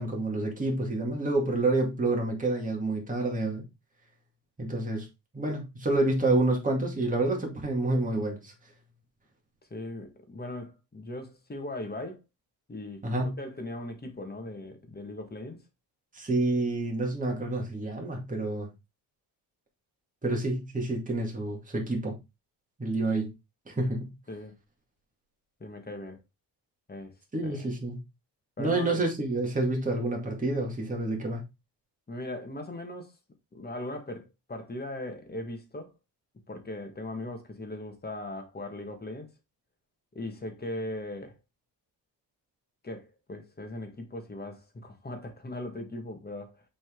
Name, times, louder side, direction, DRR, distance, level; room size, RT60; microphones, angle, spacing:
voice 1, 0.0-3.6 4.6-5.1 5.3-8.5 13.0-13.4 16.1-18.7 20.2-22.2 22.8-23.3 23.7-24.1 27.3-28.0 28.6-31.4, right 2 dB, 20° right, 2.4 m, -28 dB
voice 2, 9.7-12.2 12.7-13.0 13.4-15.6 24.3-24.5 25.6-26.2 26.9-27.1 27.4-27.7 28.6-29.0 32.1-33.1 33.5-35.9 36.5-39.3 40.2-41.4 42.8-46.6, left 1 dB, 20° left, 1.7 m, -39 dB
6.3 x 4.1 x 3.8 m
cardioid pair, 105°, 44 cm